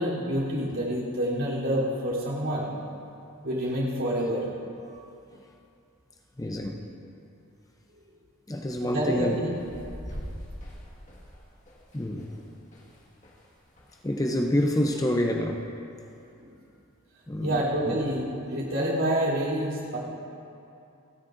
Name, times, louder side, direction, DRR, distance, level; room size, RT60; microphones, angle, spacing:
voice 1, 0.0-2.7 3.4-4.5 8.8-9.5 16.4-16.5 17.4-20.0, equal, 60° right, -7 dB, 3.5 m, -28 dB
voice 2, 6.4-6.8 8.5-9.4 11.9-12.3 14.0-15.6 17.3-18.0, left 1 dB, 15° left, 2 dB, 0.6 m, -27 dB
sound 1, 8.7-13.5 13.8-14.9, equal, 35° left, 1.7 m, -43 dB
29.0 x 9.7 x 2.6 m, 2.7 s
head